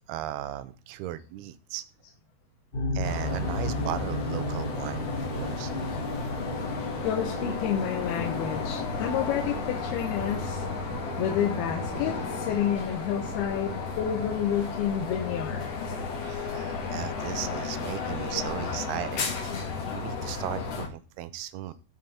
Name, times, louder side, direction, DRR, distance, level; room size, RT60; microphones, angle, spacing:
voice 1, 0.1-1.8 2.9-6.4 16.2-19.6 19.9-21.7, right 13 dB, 80° right, 14 dB, 2.6 m, -36 dB
sound 1, 2.7-18.5, left 2 dB, 20° left, 1.9 m, -37 dB
sound 2, 3.0-20.9, left 5 dB, 50° left, 2.2 m, -34 dB
sound 3, 5.9-15.0, right 4 dB, 55° right, 2.6 m, -43 dB
voice 2, 7.0-10.6 11.2-15.8, left 9 dB, 75° left, 4 dB, 2.7 m, -29 dB
15.0 x 5.2 x 4.2 m, 0.32 s
omnidirectional pair, 4.8 m